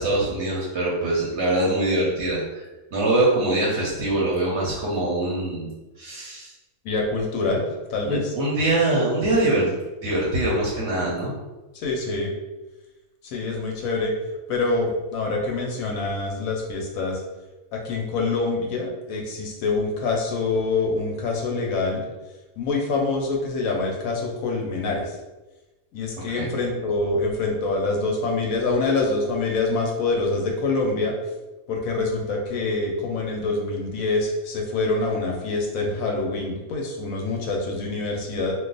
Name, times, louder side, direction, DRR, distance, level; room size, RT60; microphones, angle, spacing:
voice 1, 0.0-5.7 6.0-6.5 8.1-9.7 10.0-11.3 26.3-26.5, right 2 dB, 60° right, -4 dB, 0.8 m, -23 dB
voice 2, 6.8-7.6 7.9-8.3 11.7-12.3 13.2-14.1 14.5-17.2 17.7-22.0 22.6-25.2 25.9-31.1 31.7-38.5, left 3 dB, 70° left, 0 dB, 0.9 m, -25 dB
2.4 x 2.3 x 3.8 m, 1.1 s
omnidirectional pair, 1.6 m